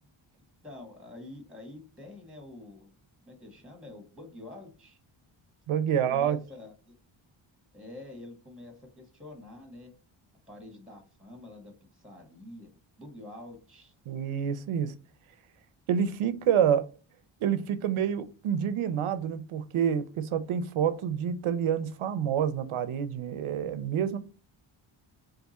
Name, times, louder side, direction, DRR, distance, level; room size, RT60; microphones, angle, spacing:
voice 1, 0.6-2.9 3.2-5.0 6.1-6.9 7.7-9.9 10.5-13.9, left 2 dB, ahead, 1.5 m, -47 dB
voice 2, 5.7-6.4 14.1-14.9 15.9-16.9 17.4-24.2, right 8 dB, 85° right, 0.7 m, -28 dB
3.6 x 3.4 x 4.1 m
cardioid pair, 95°, 48 cm